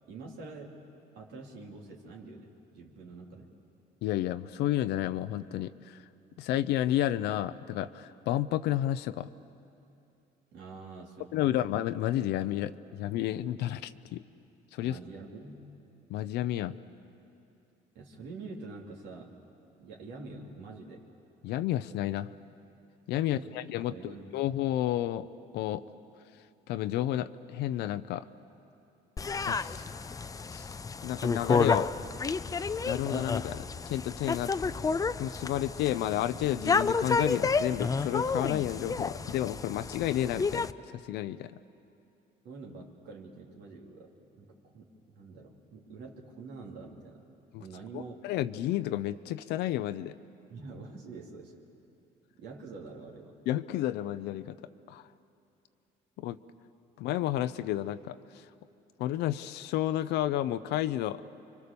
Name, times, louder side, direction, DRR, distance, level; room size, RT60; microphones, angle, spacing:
voice 1, 0.1-0.8 1.1-3.5 10.5-11.6 14.8-15.7 17.9-19.3 19.8-21.1 23.2-24.4 42.4-47.2 47.6-48.2 50.5-51.6 52.4-53.3, right 3 dB, 80° right, -1 dB, 3.2 m, -46 dB
voice 2, 4.0-6.0 6.4-9.3 11.3-14.2 14.7-15.0 16.1-16.7 21.4-22.3 23.1-25.3 25.5-25.8 26.7-28.2 29.5-29.8 30.5-30.7 31.0-31.9 32.8-34.5 35.2-41.5 47.5-47.6 47.9-50.1 53.5-54.6 54.9-55.0 56.2-56.4 57.0-58.4 59.0-61.2, left 13 dB, 80° left, 11 dB, 0.6 m, -31 dB
sound 1, 29.2-40.7, left 4 dB, 20° left, 0.5 m, -30 dB
30.0 x 24.5 x 6.9 m, 2.7 s
cardioid pair, 110°, 17 cm